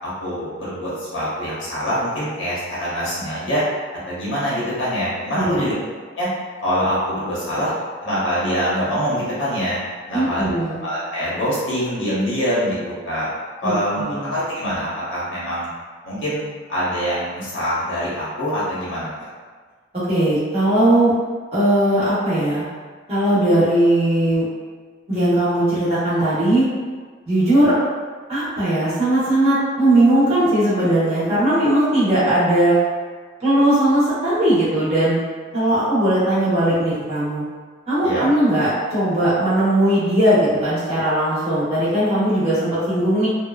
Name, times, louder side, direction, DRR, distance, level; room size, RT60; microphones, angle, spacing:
voice 1, 0.0-3.6 4.1-5.7 6.2-6.3 6.6-7.7 8.0-9.8 10.1-10.5 10.8-12.8 13.0-13.3 13.6-15.7 16.0-19.3 38.0-38.3, equal, 85° left, -8 dB, 1.1 m, -24 dB
voice 2, 5.3-5.6 10.1-10.8 13.6-14.3 19.9-21.1 21.5-22.6 23.1-24.4 25.1-26.7 27.3-27.8 28.3-32.8 33.4-35.2 35.5-37.4 37.9-43.3, right 1 dB, 35° right, -11 dB, 1.1 m, -18 dB
2.8 x 2.2 x 2.4 m, 1.5 s
head